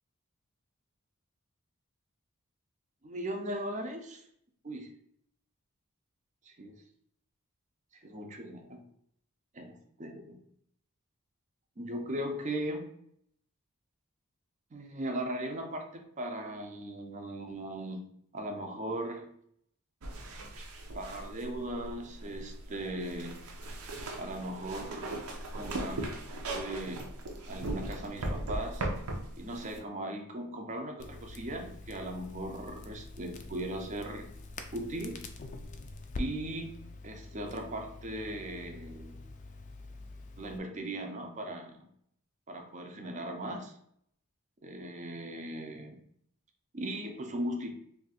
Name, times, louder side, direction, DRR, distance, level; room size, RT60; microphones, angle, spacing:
voice 1, 3.0-4.2 4.6-4.9 6.4-6.8 7.9-8.8 9.5-9.7 10.0-10.4 11.8-12.9 14.7-19.3 20.9-23.4 24.2-25.2 25.5-26.0 26.5-27.1 27.5-28.9 29.4-34.3 34.7-35.3 36.2-39.2 40.4-41.9 42.5-43.7 44.6-46.0 46.7-47.7, right 1 dB, 35° right, 4 dB, 0.5 m, -38 dB
sound 1, 20.0-29.8, right 1 dB, 85° right, 0.6 m, -38 dB
Crackle, 31.0-40.6, left 2 dB, 35° left, 0.3 m, -45 dB
2.6 x 2.4 x 4.1 m, 0.70 s
head